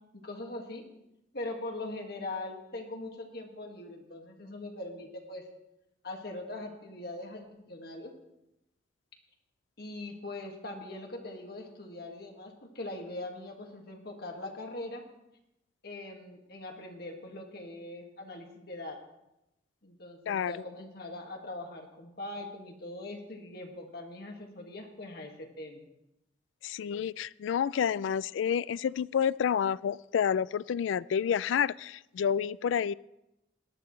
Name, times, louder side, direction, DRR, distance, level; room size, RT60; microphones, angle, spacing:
voice 1, 0.1-0.8 1.3-5.4 6.0-8.1 9.8-15.0 15.8-19.0 19.8-25.9, left 2 dB, 55° left, 2 dB, 2.0 m, -41 dB
voice 2, 26.6-32.9, left 8 dB, 90° left, 20 dB, 0.3 m, -29 dB
18.0 x 11.0 x 3.2 m, 0.89 s
head